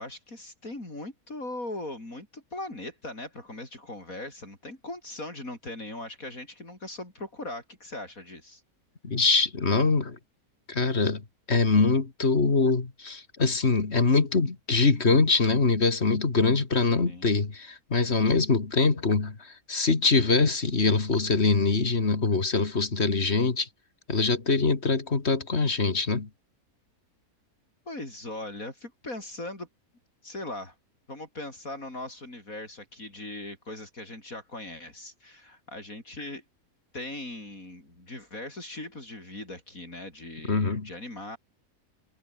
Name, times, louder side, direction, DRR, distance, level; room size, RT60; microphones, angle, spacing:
voice 1, 0.0-8.6 17.0-17.3 27.9-29.7 30.2-30.8 31.1-36.4 36.9-41.4, left 2 dB, 65° left, 7.1 m, -39 dB
voice 2, 9.0-10.2 10.7-23.7 24.1-26.3 40.5-40.9, left 4 dB, 45° left, 2.5 m, -24 dB
omnidirectional pair, 1.6 m